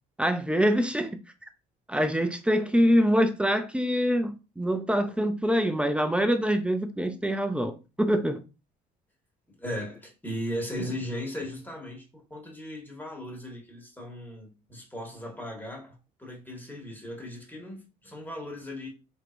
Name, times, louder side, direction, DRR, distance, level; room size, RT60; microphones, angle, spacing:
voice 1, 0.2-1.1 1.9-8.4, equal, 5° right, 0.5 m, -25 dB
voice 2, 9.6-18.9, equal, 10° left, 1.6 m, -37 dB
4.4 x 3.5 x 2.5 m
cardioid pair, 110°, 17 cm